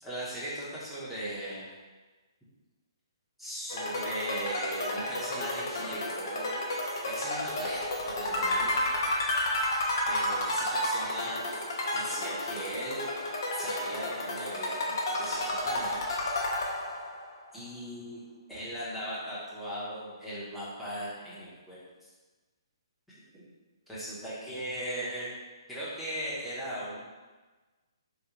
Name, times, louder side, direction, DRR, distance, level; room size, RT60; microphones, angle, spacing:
voice 1, 0.0-1.7 3.4-6.5 6.8-9.1 9.4-9.6 10.1-11.4 11.9-13.0 13.5-16.0 17.5-18.2 18.5-22.1 23.3-23.4 23.9-25.3 25.7-27.0, equal, ahead, -11 dB, 0.9 m, -38 dB
sound 1, 3.7-17.3, left 1 dB, 45° left, 0.7 m, -31 dB
3.7 x 2.6 x 2.9 m, 1.3 s
figure-of-eight pair, 130°, 3 cm